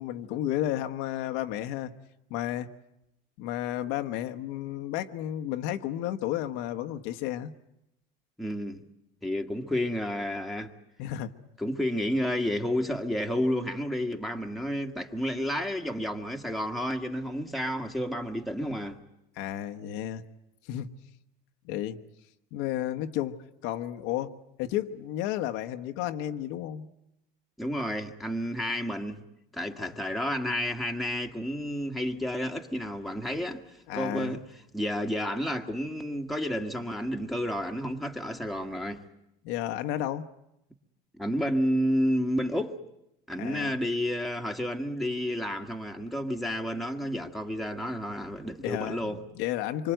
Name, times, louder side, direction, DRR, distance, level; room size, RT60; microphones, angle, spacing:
voice 1, 0.0-1.9 2.3-2.7 3.4-7.5 11.0-11.3 19.4-20.2 20.7-20.9 21.6-22.0 22.5-23.4 23.6-24.3 24.6-26.9 29.7-29.9 33.9-34.4 39.4-40.3 43.4-43.7 48.6-49.9, left 12 dB, 75° left, 1.3 m, -32 dB
voice 2, 8.4-8.8 9.2-10.7 11.6-19.0 27.6-29.2 29.5-34.4 34.7-39.0 41.2-42.8 43.3-49.2, equal, ahead, 1.7 m, -31 dB
26.0 x 24.5 x 9.2 m
cardioid pair, 135°, 21 cm